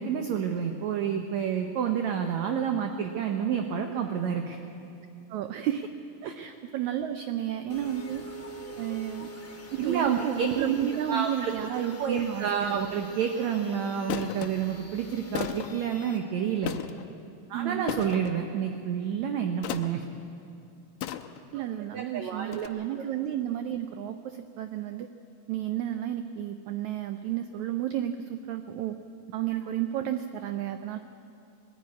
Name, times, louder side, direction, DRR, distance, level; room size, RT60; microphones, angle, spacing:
voice 1, 0.0-4.6 6.2-6.3 9.8-10.5 11.1-11.5 12.0-16.8 17.5-20.0 21.6-21.7 21.9-22.7, right 7 dB, 70° right, 4 dB, 1.9 m, -29 dB
voice 2, 5.3-5.9 6.4-8.2 8.8-9.3 9.7-12.8 17.5-17.9 21.5-25.1 25.5-29.0 29.3-31.0, right 11 dB, 85° right, 8 dB, 1.6 m, -31 dB
sound 1, 7.7-16.2, equal, 35° left, 1.3 m, -46 dB
sound 2, 12.9-13.1 14.1-14.5 15.3-15.8 16.6-17.1 17.9-18.3 19.6-20.0 21.0-21.5 22.5-22.7, left 12 dB, 85° left, 2.5 m, -34 dB
20.0 x 15.0 x 9.5 m, 2.6 s
omnidirectional pair, 4.1 m